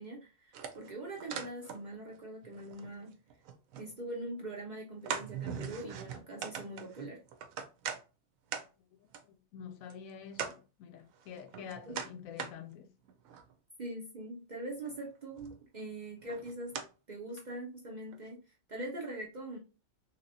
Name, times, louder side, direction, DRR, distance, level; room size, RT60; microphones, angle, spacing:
voice 1, 0.0-3.1 3.8-7.2 11.9-12.0 13.8-16.8 17.1-18.4 18.7-19.6, right 1 dB, 55° right, 0.5 m, -42 dB
sound 1, 0.5-2.2 2.4-3.9 4.3-4.4 5.0-8.0 8.5-8.6 9.1-9.2 9.9-10.0 10.3-10.6 11.1-12.5 13.0-13.5 14.9-15.0 15.4-15.8 16.3-16.9 17.4-17.5 18.1-18.2, right 7 dB, 70° right, 0.9 m, -41 dB
voice 2, 9.2-12.9, left 7 dB, 70° left, 1.0 m, -47 dB
3.2 x 2.8 x 2.6 m
omnidirectional pair, 1.6 m